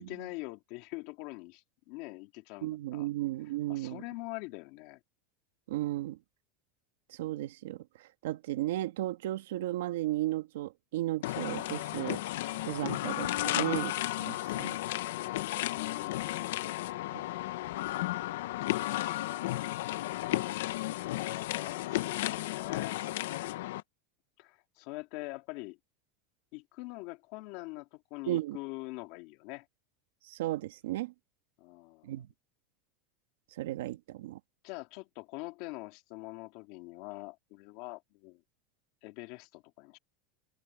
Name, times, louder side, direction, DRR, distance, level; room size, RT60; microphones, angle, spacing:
voice 1, 0.0-3.1 3.7-5.0 15.6-16.7 20.9-23.0 24.4-25.8 26.5-29.7 31.6-32.1 34.6-38.4 39.0-40.0, left 23 dB, 45° left, 2.5 m, -44 dB
voice 2, 2.6-4.0 5.7-6.2 7.1-7.8 8.2-12.2 12.7-14.8 17.1-17.2 28.3-28.6 30.3-31.1 32.0-32.3 33.6-34.4, right 15 dB, 85° right, 1.8 m, -34 dB
sound 1, 11.2-23.8, left 16 dB, 75° left, 0.7 m, -34 dB
supercardioid pair, 175°, 0 cm